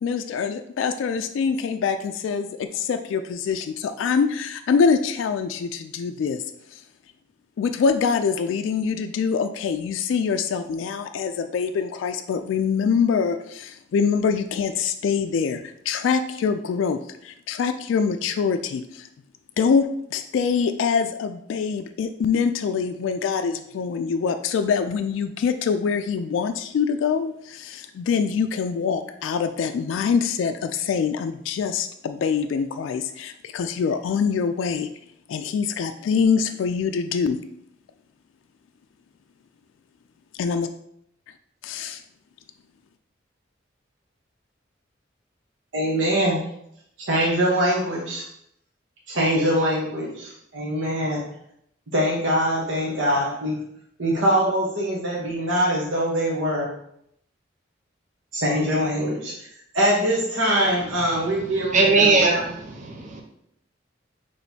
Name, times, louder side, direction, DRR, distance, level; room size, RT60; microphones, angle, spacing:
voice 1, 0.0-6.4 6.7-6.8 7.6-19.1 19.6-34.9 35.3-37.4 40.4-40.7 41.6-42.0, left 6 dB, 85° left, 9 dB, 0.3 m, -24 dB
voice 2, 45.7-46.4 47.0-48.2 49.1-51.2 51.9-53.6 54.0-56.7 58.3-59.3 59.7-62.4, equal, 85° right, -4 dB, 1.0 m, -23 dB
voice 3, 61.7-62.4 62.8-63.2, right 3 dB, 40° right, 0 dB, 0.7 m, -18 dB
6.1 x 3.1 x 2.7 m, 0.74 s
head